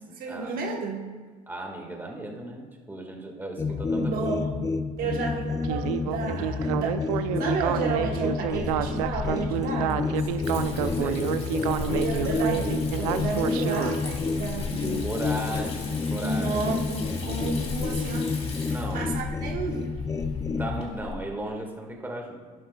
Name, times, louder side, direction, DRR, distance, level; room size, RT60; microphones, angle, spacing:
voice 1, 0.2-1.1 3.9-4.5 5.0-10.1 11.9-15.1 16.1-19.8, right 4 dB, 55° right, 1 dB, 1.2 m, -32 dB
voice 2, 1.5-4.3 5.0-5.2 10.8-11.3 11.6-11.8 15.0-16.6 18.7-19.1 20.5-22.4, right 1 dB, 10° right, 1 dB, 1.7 m, -36 dB
sound 1, 3.6-20.8, left 4 dB, 20° left, 0.5 m, -30 dB
Speech synthesizer, 5.6-14.0, right 11 dB, 85° right, 0.5 m, -29 dB
Water tap faucet / Sink (filling or washing), 8.5-21.1, left 3 dB, 35° left, 2.8 m, -37 dB
11.5 x 11.0 x 2.3 m, 1.5 s
supercardioid pair, 85°, 18 cm